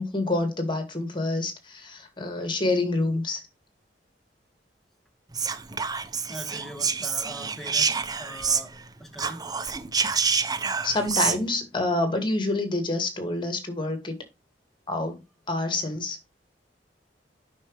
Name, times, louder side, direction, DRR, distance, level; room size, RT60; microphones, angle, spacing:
voice 1, 0.0-3.4 10.8-14.2 14.9-15.2 15.5-16.2, left 2 dB, 25° left, 2.3 m, -27 dB
Whispering, 5.3-8.9 9.1-11.4, right 5 dB, 20° right, 0.7 m, -27 dB
voice 2, 6.2-9.4, right 1 dB, ahead, 1.7 m, -42 dB
9.5 x 6.2 x 3.3 m
head